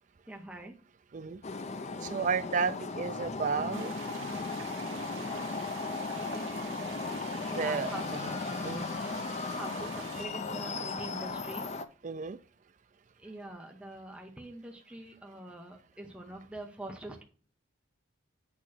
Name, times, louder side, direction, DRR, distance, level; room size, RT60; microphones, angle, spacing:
voice 1, 0.3-0.8 3.2-3.4 5.2-5.3 7.5-8.1 8.9-11.7 13.2-17.2, right 1 dB, 5° right, 0.8 m, -44 dB
sound 1, 1.4-11.8, left 3 dB, 30° left, 0.5 m, -36 dB
voice 2, 2.0-4.3 5.6-5.7 7.5-8.3 8.6-8.9 12.0-12.4, right 5 dB, 35° right, 0.4 m, -33 dB
sound 2, 3.7-10.3, right 7 dB, 70° right, 1.2 m, -47 dB
8.5 x 3.0 x 6.1 m
head